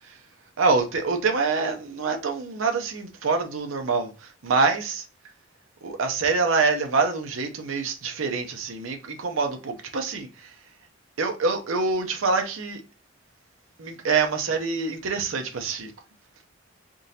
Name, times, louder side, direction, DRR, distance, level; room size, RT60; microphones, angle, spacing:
voice 1, 0.6-4.1 4.4-5.0 5.8-10.3 11.2-12.8 13.8-15.9, right 4 dB, 90° right, 0.7 m, -25 dB
3.8 x 3.6 x 2.7 m
head